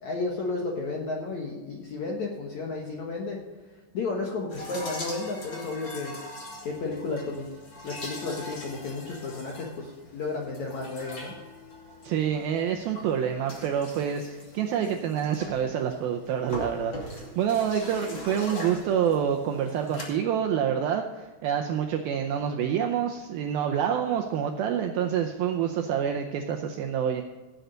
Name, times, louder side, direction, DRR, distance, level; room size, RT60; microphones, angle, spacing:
voice 1, 0.0-3.4 3.9-6.1 6.6-7.5 7.8-11.3, left 3 dB, 70° left, -1 dB, 1.8 m, -32 dB
sound 1, 4.5-20.0, left 1 dB, 30° left, 2.5 m, -42 dB
voice 2, 12.0-27.2, right 8 dB, 90° right, 4 dB, 2.1 m, -27 dB
17.0 x 8.0 x 4.0 m, 1.3 s
omnidirectional pair, 5.1 m